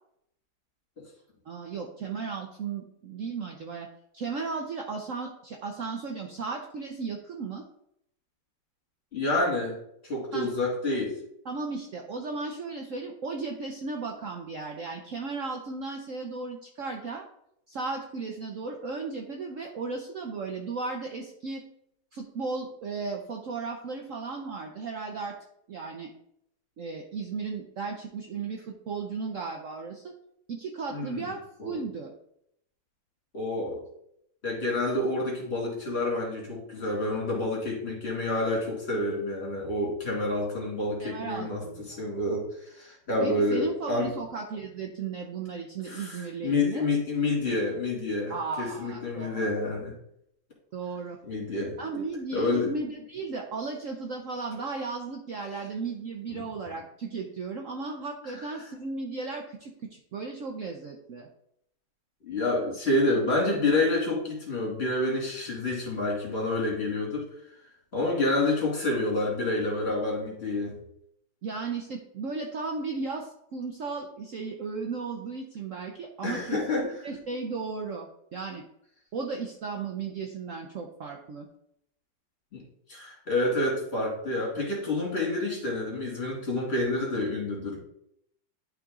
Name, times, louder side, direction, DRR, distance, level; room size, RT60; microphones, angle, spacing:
voice 1, 1.5-3.9 4.1-7.6 10.3-10.5 11.4-17.2 17.7-21.6 22.1-25.4 25.7-26.1 26.8-30.1 30.5-32.1 41.0-42.0 43.2-46.9 48.3-49.7 50.7-51.2 51.8-61.3 71.4-78.6 79.1-81.5, right 4 dB, 55° right, 2 dB, 0.9 m, -35 dB
voice 2, 9.1-9.8 10.0-11.1 30.9-31.3 31.6-31.8 33.3-33.8 34.4-41.6 41.9-44.1 45.8-49.9 51.2-51.8 52.3-52.7 56.3-56.5 62.2-67.2 67.9-70.8 76.2-76.9 82.5-82.6 82.9-87.8, left 2 dB, 35° left, -3 dB, 2.7 m, -28 dB
11.5 x 3.8 x 3.6 m, 0.74 s
omnidirectional pair, 2.0 m